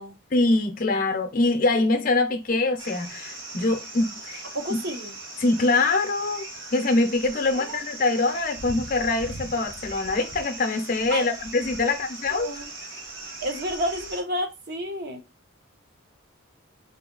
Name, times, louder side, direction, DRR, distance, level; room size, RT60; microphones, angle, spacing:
voice 1, 0.3-4.4 5.4-12.5, left 2 dB, 40° left, 0.6 m, -24 dB
sound 1, 2.8-14.2, right 2 dB, 70° right, 1.2 m, -39 dB
voice 2, 4.5-5.1 7.5-7.8 11.1-11.3 11.8-12.0 12.4-12.7 13.4-15.2, equal, 50° right, 0.8 m, -30 dB
4.0 x 2.8 x 3.8 m
head